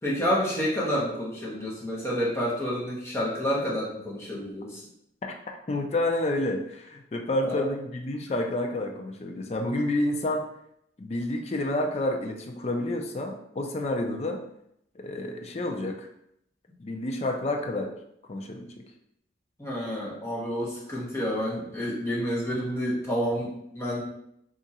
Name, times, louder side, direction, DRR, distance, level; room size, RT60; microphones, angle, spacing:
voice 1, 0.0-4.9 7.4-7.7 19.6-24.0, equal, 15° left, -6 dB, 0.9 m, -29 dB
voice 2, 5.7-10.4 11.0-14.4 15.0-16.1 16.8-17.9 18.3-18.7, left 1 dB, 35° left, 3 dB, 0.4 m, -29 dB
2.7 x 2.5 x 4.1 m, 0.75 s
head